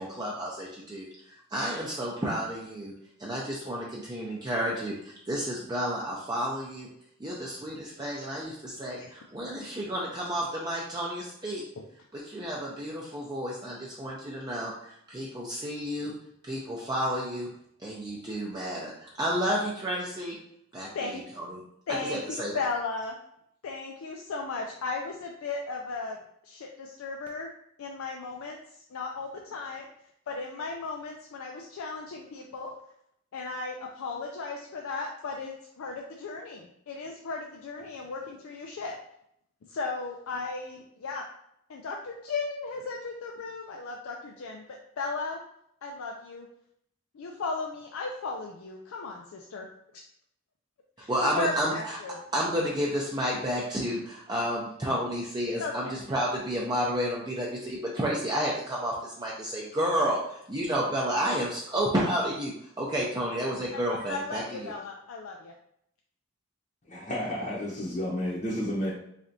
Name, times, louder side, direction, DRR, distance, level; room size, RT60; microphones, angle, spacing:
voice 1, 0.0-2.9 3.2-6.9 7.2-11.6 12.1-16.1 16.4-17.5 17.8-20.4 20.7-21.6 22.1-22.6 51.1-52.0 52.3-64.7, equal, 20° right, -4 dB, 0.5 m, -31 dB
voice 2, 21.9-22.2 22.5-23.2 23.6-26.2 26.4-27.5 27.8-28.6 28.9-29.9 30.3-32.7 33.3-38.9 39.7-41.2 41.7-44.6 45.0-45.4 45.8-46.5 47.1-49.7 51.0-52.2 55.6-56.0 63.7-65.5, left 3 dB, 85° left, 1 dB, 0.4 m, -36 dB
voice 3, 66.9-68.9, equal, 35° left, -7 dB, 0.7 m, -31 dB
3.8 x 3.3 x 2.6 m, 0.74 s
head